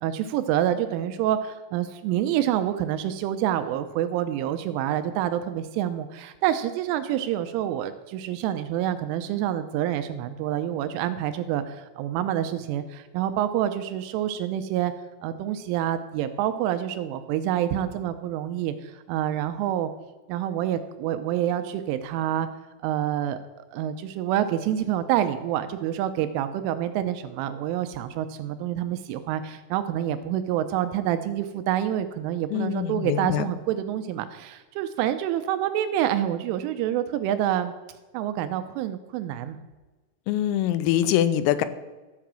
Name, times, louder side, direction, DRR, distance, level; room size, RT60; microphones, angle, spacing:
voice 1, 0.0-14.9 15.2-19.9 20.3-22.5 22.8-23.4 23.7-37.7 38.1-39.6, right 11 dB, 80° right, 9 dB, 2.9 m, -27 dB
voice 2, 32.5-33.5 40.3-41.7, left 11 dB, 85° left, 13 dB, 3.3 m, -24 dB
13.0 x 5.8 x 7.4 m, 1.2 s
omnidirectional pair, 5.9 m